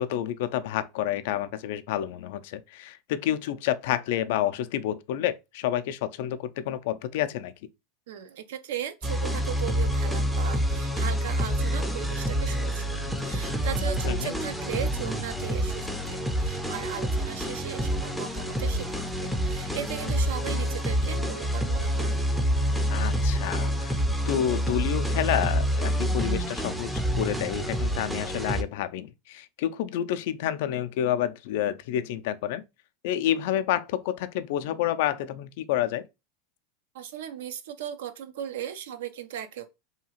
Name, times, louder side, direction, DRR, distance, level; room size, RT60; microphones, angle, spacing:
voice 1, 0.0-7.5 14.0-14.3 22.9-24.0 24.3-26.9 27.2-32.6 33.0-36.0, left 11 dB, 70° left, 0.3 m, -29 dB
voice 2, 8.1-18.9 19.2-22.2 36.9-39.7, right 9 dB, 80° right, 0.4 m, -37 dB
sound 1, 9.0-28.6, equal, 5° right, 0.4 m, -27 dB
2.8 x 2.3 x 2.9 m
supercardioid pair, 115°, 0 cm